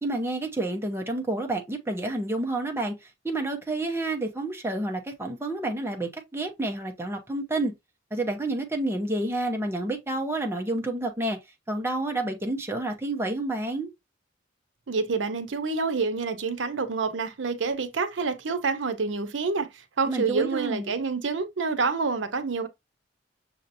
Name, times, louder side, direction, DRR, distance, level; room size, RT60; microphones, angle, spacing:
voice 1, 0.0-7.7 8.1-11.4 11.7-13.9 20.1-20.9, right 2 dB, 15° right, 0.8 m, -29 dB
voice 2, 14.9-22.7, right 4 dB, 80° right, 0.7 m, -28 dB
6.5 x 2.8 x 2.6 m
head